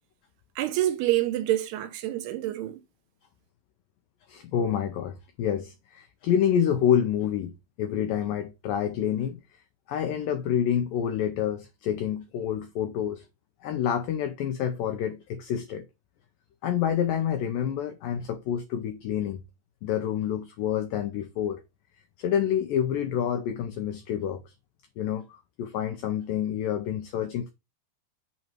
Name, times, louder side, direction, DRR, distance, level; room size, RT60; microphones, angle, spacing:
voice 1, 0.6-2.8, right 14 dB, 80° right, 2.6 m, -27 dB
voice 2, 4.3-9.4 9.9-13.3 13.6-15.9 16.6-19.4 19.8-21.6 22.2-24.5 25.0-27.5, left 9 dB, 90° left, 1.9 m, -28 dB
8.4 x 3.1 x 4.4 m
omnidirectional pair, 4.8 m